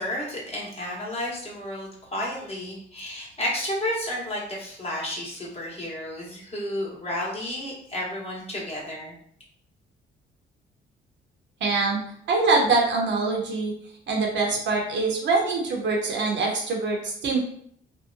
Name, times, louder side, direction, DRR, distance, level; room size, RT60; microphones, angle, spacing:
voice 1, 0.0-9.1, left 1 dB, 30° left, -4 dB, 1.0 m, -32 dB
voice 2, 11.6-12.0 12.3-13.7 14.1-17.4, right 3 dB, 65° right, 0 dB, 0.7 m, -24 dB
2.7 x 2.1 x 2.5 m, 0.64 s
cardioid pair, 90°, 20 cm